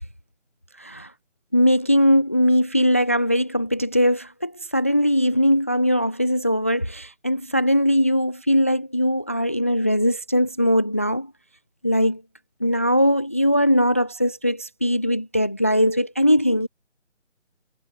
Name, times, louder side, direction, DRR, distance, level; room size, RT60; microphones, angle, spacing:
voice 1, 0.8-1.1 1.5-11.3 11.8-12.2 12.6-16.7, equal, 10° left, 0.8 m, -20 dB
figure-of-eight pair, 160°, 38 cm